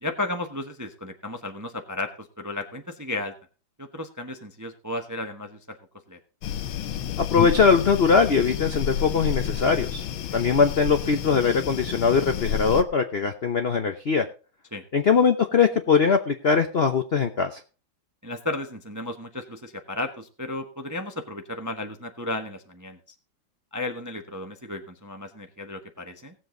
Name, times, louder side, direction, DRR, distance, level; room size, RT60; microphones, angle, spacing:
voice 1, 0.0-3.3 3.8-5.8 6.1-6.2 10.3-10.4 14.7-14.8 18.2-23.0 23.7-26.3, left 2 dB, 20° right, 6 dB, 0.5 m, -34 dB
sound 1, 6.4-12.8, left 9 dB, 85° left, 1.7 m, -30 dB
voice 2, 7.2-10.0 10.3-14.2 14.9-17.6, left 5 dB, 60° left, 7 dB, 0.6 m, -21 dB
18.0 x 7.8 x 3.8 m, 0.34 s
omnidirectional pair, 2.2 m